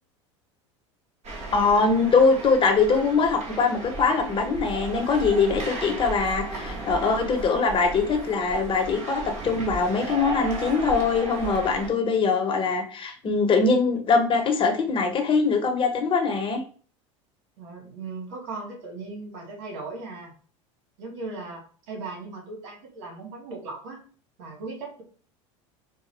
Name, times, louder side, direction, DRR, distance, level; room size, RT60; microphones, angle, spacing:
sound 1, 1.2-11.9, right 2 dB, 45° right, 1.7 m, -35 dB
voice 1, 1.5-16.6, left 4 dB, 35° left, 4 dB, 1.1 m, -22 dB
voice 2, 17.6-20.3 21.0-24.0 24.4-25.0, right 3 dB, 75° right, 1 dB, 1.7 m, -38 dB
4.8 x 2.4 x 3.3 m, 0.42 s
hypercardioid pair, 90°, 16 cm